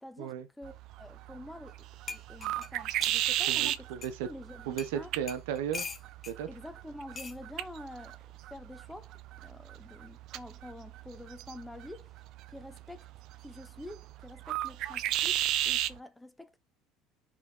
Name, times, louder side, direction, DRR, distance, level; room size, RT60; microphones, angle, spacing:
voice 1, 0.0-3.9 4.2-5.1 6.5-8.2 8.5-12.1 12.5-13.1 13.4-16.6, left 1 dB, 5° left, 1.0 m, -47 dB
sound 1, 0.6-16.0, right 13 dB, 60° right, 0.7 m, -36 dB
sound 2, 1.7-1.8 2.1-3.2 4.0-4.1 4.8-4.9 5.3-6.4 7.2-7.4 8.5-8.8, left 5 dB, 30° left, 1.4 m, -42 dB
voice 2, 3.5-4.3 4.7-5.8 6.3-6.5, right 9 dB, 85° right, 1.2 m, -35 dB
6.2 x 3.7 x 4.5 m
supercardioid pair, 95°, 0 cm